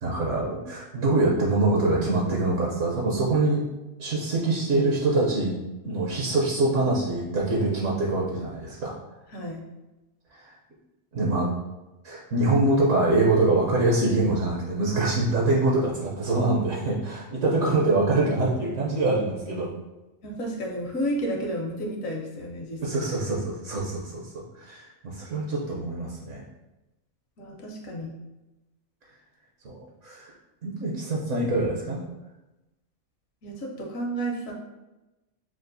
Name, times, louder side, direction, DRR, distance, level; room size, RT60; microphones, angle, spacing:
voice 1, 0.0-3.6 4.0-5.5 5.8-8.9 10.4-10.5 11.1-11.5 12.0-19.7 22.8-26.4 29.6-30.3 30.6-32.0, right 2 dB, 65° right, -3 dB, 1.0 m, -24 dB
voice 2, 20.2-22.8 27.4-28.1 33.4-34.5, right 1 dB, 75° left, 0 dB, 1.2 m, -31 dB
6.0 x 2.4 x 2.6 m, 1.0 s
omnidirectional pair, 1.4 m